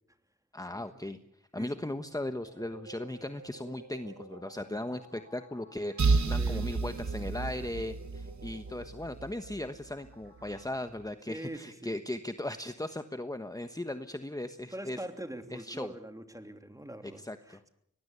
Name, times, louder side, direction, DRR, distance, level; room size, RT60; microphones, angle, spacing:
voice 1, 0.5-1.2 1.5-15.0 15.5-15.9 17.0-17.6, left 1 dB, 10° left, 9 dB, 1.2 m, -38 dB
sound 1, 2.4-10.9, right 2 dB, 45° right, 6.6 m, -53 dB
sound 2, 6.0-9.7, right 4 dB, 75° right, 1.3 m, -31 dB
voice 2, 6.3-6.6 11.3-11.9 14.7-17.7, right 1 dB, 10° right, 7 dB, 3.2 m, -43 dB
23.5 x 19.5 x 8.3 m, 0.73 s
wide cardioid pair, 60°, 29 cm